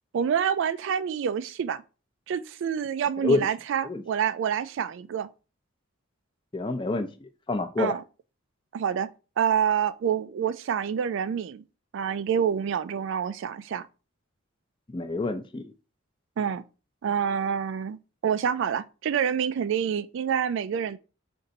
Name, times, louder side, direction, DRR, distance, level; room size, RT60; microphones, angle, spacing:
voice 1, 0.1-1.8 2.3-5.3 7.8-8.0 8.7-9.1 9.4-11.6 11.9-13.9 16.4-16.6 17.0-18.0 18.2-21.0, right 8 dB, 60° right, 0.3 m, -27 dB
voice 2, 6.5-8.0 14.9-15.7, left 3 dB, 25° left, 0.5 m, -28 dB
5.2 x 2.6 x 3.9 m
head